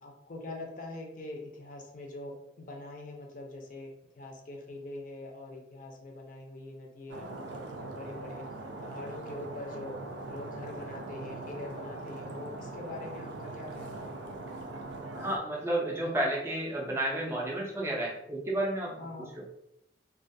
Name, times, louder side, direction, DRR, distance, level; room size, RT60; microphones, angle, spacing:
voice 1, 0.0-3.9 4.1-8.4 8.8-10.0 10.3-14.2 19.0-19.4, left 2 dB, 45° left, 0 dB, 0.5 m, -43 dB
Stream, 7.1-15.4, right 2 dB, 80° right, 0.4 m, -41 dB
voice 2, 15.1-19.0 19.3-19.4, right 1 dB, 15° right, -3 dB, 0.4 m, -31 dB
2.4 x 2.3 x 2.5 m, 0.80 s
head